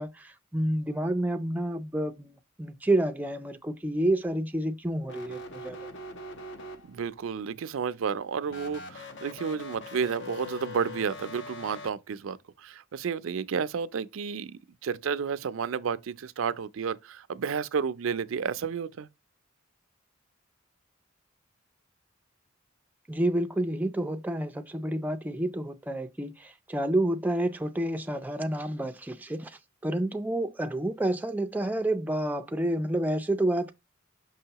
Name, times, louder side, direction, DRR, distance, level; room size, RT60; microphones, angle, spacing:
voice 1, 0.0-5.9 23.1-33.7, right 1 dB, 10° right, 0.4 m, -29 dB
sound 1, 5.0-7.2 8.5-11.9, left 2 dB, 60° left, 0.8 m, -42 dB
voice 2, 6.9-19.1, right 6 dB, 75° right, 0.4 m, -31 dB
5.9 x 5.5 x 2.9 m
head